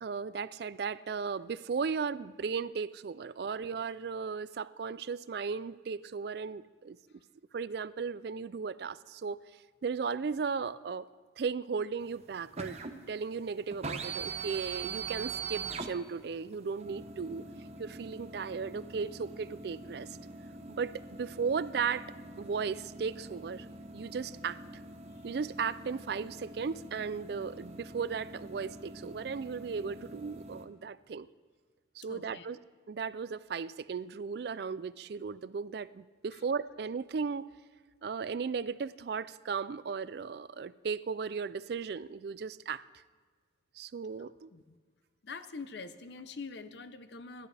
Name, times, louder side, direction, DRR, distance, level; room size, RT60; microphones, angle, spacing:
voice 1, 0.0-7.0 7.5-9.4 9.8-11.1 11.4-12.8 13.1-17.4 17.8-20.2 20.7-22.1 22.4-23.7 23.9-24.6 25.2-31.3 32.0-32.6 32.9-37.5 38.0-42.8 43.8-44.5, right 5 dB, 55° right, 17 dB, 0.3 m, -36 dB
sound 1, 12.0-30.7, right 4 dB, 35° right, 0.9 m, -44 dB
voice 2, 32.1-32.5 36.3-36.4 44.2-44.8 45.2-47.5, left 4 dB, 65° left, 12 dB, 0.7 m, -45 dB
26.5 x 12.0 x 3.4 m, 1.5 s
head